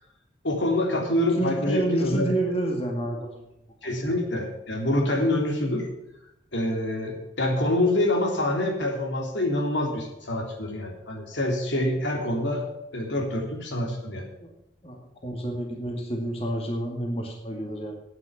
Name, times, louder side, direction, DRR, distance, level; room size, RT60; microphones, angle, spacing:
voice 1, 0.4-2.3 3.8-5.9 6.5-12.6 12.9-14.3, left 1 dB, 90° left, 1 dB, 3.5 m, -26 dB
voice 2, 1.4-3.3 14.4-14.5 14.8-18.0, right 1 dB, 35° left, 2 dB, 2.0 m, -29 dB
9.5 x 9.1 x 9.6 m, 0.85 s
head